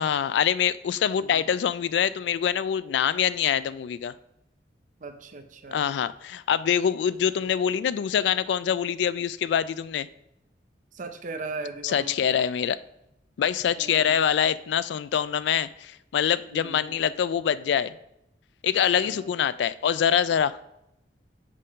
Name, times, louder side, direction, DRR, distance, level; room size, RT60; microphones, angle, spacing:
voice 1, 0.0-4.1 5.7-10.1 11.8-12.8 13.4-17.9 18.6-20.6, left 8 dB, 75° left, 16 dB, 0.3 m, -25 dB
voice 2, 5.0-5.8 10.9-12.2 13.8-14.2 16.5-17.0 18.9-19.3, right 3 dB, 45° right, 7 dB, 0.7 m, -38 dB
6.6 x 3.7 x 5.1 m, 0.81 s
head